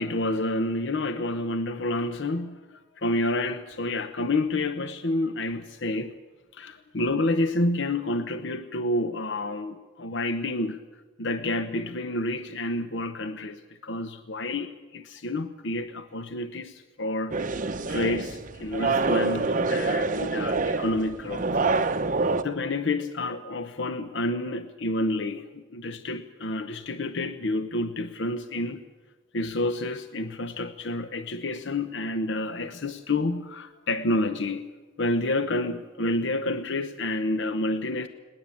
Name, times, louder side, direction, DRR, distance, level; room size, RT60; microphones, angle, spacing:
voice 1, 0.0-6.1 6.5-10.8 11.2-21.6 22.4-28.8 29.3-34.6 35.0-38.1, left 2 dB, 65° left, 10 dB, 0.9 m, -29 dB
sound 1, 17.3-22.4, right 3 dB, 45° right, 1.0 m, -26 dB
20.5 x 19.0 x 8.5 m, 1.3 s
head